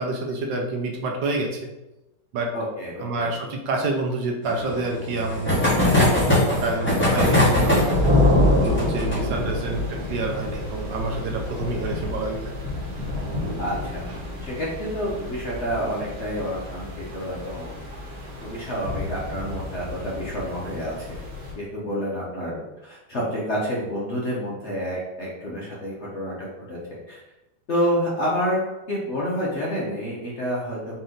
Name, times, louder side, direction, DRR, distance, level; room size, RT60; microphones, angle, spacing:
voice 1, 0.0-1.7 2.3-2.5 3.0-7.8 8.5-12.5, right 2 dB, 75° right, 1 dB, 1.3 m, -28 dB
voice 2, 2.5-3.3 9.1-9.7 13.6-14.1 14.4-17.8 18.4-21.3 21.5-27.2 27.7-28.6 28.9-31.0, equal, 50° left, -5 dB, 0.9 m, -29 dB
sound 1, 4.4-13.6 13.9-14.0 14.2-14.3 14.6-14.7 16.1-16.4 17.0-17.5, left 1 dB, 5° left, 1.1 m, -23 dB
sound 2, 7.5-21.5, left 1 dB, 55° right, 1.5 m, -27 dB
4.3 x 3.0 x 3.8 m, 0.96 s
omnidirectional pair, 2.0 m